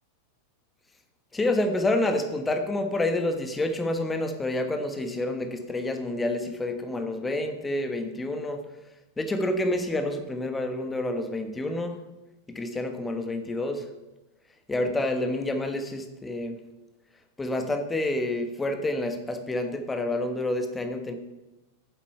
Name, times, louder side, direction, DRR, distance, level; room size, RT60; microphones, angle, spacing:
voice 1, 1.3-8.6 9.2-12.0 12.5-13.9 14.7-16.6 17.4-21.1, left 1 dB, 10° left, 7 dB, 1.2 m, -28 dB
9.4 x 7.3 x 5.6 m, 1.0 s
figure-of-eight pair, 90°, 0 cm